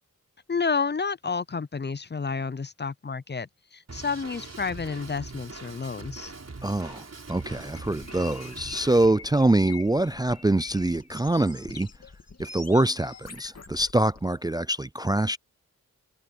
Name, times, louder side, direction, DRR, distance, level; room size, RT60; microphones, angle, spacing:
voice 1, 0.5-6.3, left 5 dB, 30° left, 0.6 m, -30 dB
Drum kit, 3.9-9.1, right 3 dB, 50° right, 4.9 m, -42 dB
voice 2, 6.6-11.9 12.4-15.4, right 2 dB, 10° right, 0.4 m, -24 dB
sound 1, 7.3-14.3, left 4 dB, 50° left, 2.5 m, -46 dB
cardioid pair, 50°, 33 cm